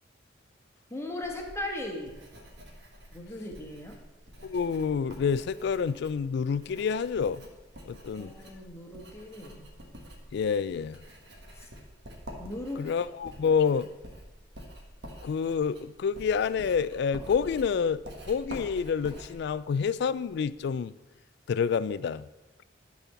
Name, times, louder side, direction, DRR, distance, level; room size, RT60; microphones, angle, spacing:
voice 1, 0.9-2.1 3.1-4.0 8.2-9.7 11.5-11.7 12.4-12.9, left 1 dB, 15° left, 1 dB, 1.3 m, -38 dB
Writing, 1.2-20.8, equal, 60° right, 1.5 m, -48 dB
voice 2, 4.4-7.4 7.9-8.3 10.3-11.0 12.8-13.9 15.2-20.9 21.5-22.3, left 6 dB, 60° left, 17 dB, 0.3 m, -28 dB
12.5 x 4.2 x 5.8 m, 1.1 s
head